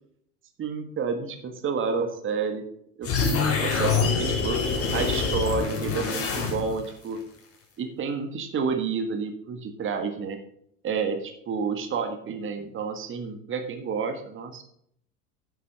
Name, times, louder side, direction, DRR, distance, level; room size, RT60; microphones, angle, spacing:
voice 1, 0.6-2.6 3.0-4.6 4.9-7.2 7.8-10.4 10.8-14.6, right 5 dB, 25° right, 7 dB, 1.6 m, -30 dB
sound 1, 3.0-6.9, left 5 dB, 30° left, 3.6 m, -25 dB
10.0 x 8.5 x 4.2 m, 0.68 s
figure-of-eight pair, 80°, 46 cm